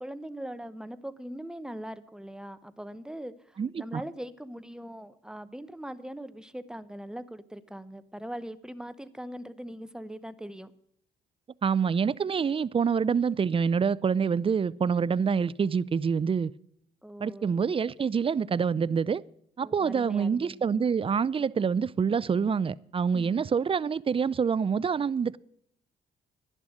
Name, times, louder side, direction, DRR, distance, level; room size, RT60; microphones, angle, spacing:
voice 1, 0.0-10.7 17.0-17.6 19.6-20.7 23.1-23.4, equal, 5° right, 0.9 m, -41 dB
voice 2, 3.6-4.0 11.6-16.5 17.2-19.2 19.6-25.4, right 6 dB, 25° right, 0.4 m, -26 dB
11.0 x 11.0 x 6.3 m
cardioid pair, 90°, 20 cm